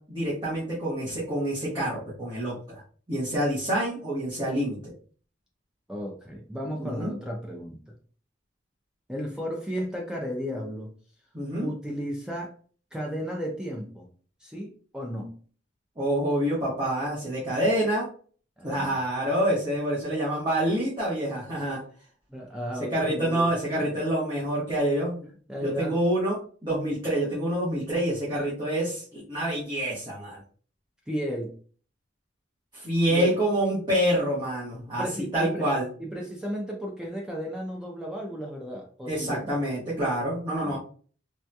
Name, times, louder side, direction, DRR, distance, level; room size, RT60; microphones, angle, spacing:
voice 1, 0.1-2.5 3.1-4.8 6.8-7.1 11.3-11.7 16.0-18.0 18.6-21.8 22.9-25.3 25.6-26.3 26.6-30.4 32.7-35.0 35.3-35.8 39.1-40.8, right 1 dB, 25° right, -8 dB, 1.3 m, -27 dB
voice 2, 5.9-7.8 9.1-10.9 11.6-12.5 12.9-14.1 14.4-15.4 18.6-19.0 22.3-24.0 25.5-25.9 31.1-31.5 33.1-33.3 34.9-35.7 36.0-39.6 40.6-40.8, equal, 5° right, -1 dB, 0.4 m, -34 dB
3.5 x 2.8 x 2.2 m, 0.42 s
head